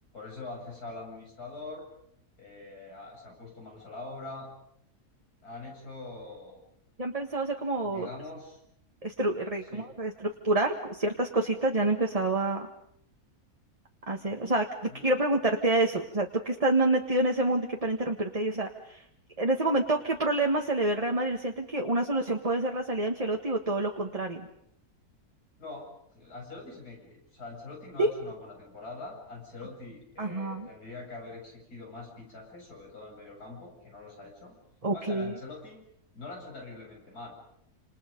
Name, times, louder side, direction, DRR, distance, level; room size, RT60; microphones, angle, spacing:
voice 1, 0.1-1.9 2.4-4.5 5.4-6.6 7.8-8.6 9.7-9.9 14.9-15.1 25.6-34.5 34.9-35.8 36.1-37.4, left 3 dB, 90° left, 0 dB, 8.3 m, -43 dB
voice 2, 7.0-8.1 9.0-12.7 14.1-19.0 19.4-24.5 28.0-28.1 30.2-30.7 34.8-35.4, right 2 dB, 25° right, 2 dB, 1.5 m, -28 dB
29.0 x 27.5 x 5.3 m, 0.71 s
omnidirectional pair, 1.6 m